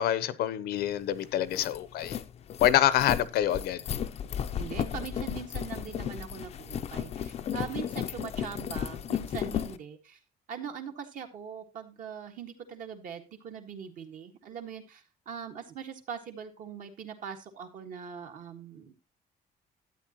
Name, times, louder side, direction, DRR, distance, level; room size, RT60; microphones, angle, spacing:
voice 1, 0.0-2.2 2.6-3.8, left 12 dB, 70° left, 0.8 m, -26 dB
sound 1, 0.9-1.0 1.3-9.8, left 9 dB, 40° left, 0.5 m, -34 dB
voice 2, 4.6-10.2 10.5-18.9, right 7 dB, 55° right, 1.7 m, -41 dB
12.5 x 8.7 x 2.9 m
cardioid pair, 160°, 17 cm